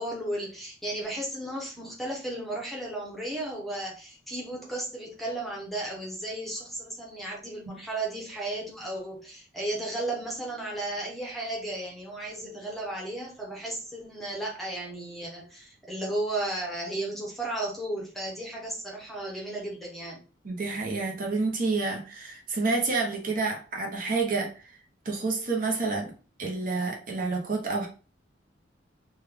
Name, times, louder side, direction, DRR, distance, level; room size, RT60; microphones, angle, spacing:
voice 1, 0.0-20.2, right 1 dB, ahead, -2 dB, 0.8 m, -34 dB
voice 2, 20.4-24.5 25.0-26.1 26.4-27.9, right 3 dB, 45° right, 0 dB, 0.7 m, -29 dB
3.2 x 2.2 x 3.4 m, 0.36 s
head